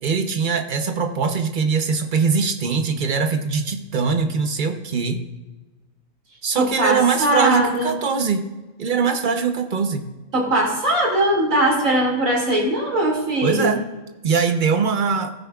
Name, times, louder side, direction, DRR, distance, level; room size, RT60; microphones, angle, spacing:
voice 1, 0.0-5.2 6.4-8.4 8.8-10.0 13.4-13.9 14.2-15.3, right 5 dB, 45° right, 6 dB, 0.8 m, -22 dB
voice 2, 6.6-7.9 10.3-13.8, right 1 dB, 70° right, -1 dB, 2.7 m, -20 dB
15.5 x 9.2 x 2.4 m, 1.1 s
omnidirectional pair, 1.4 m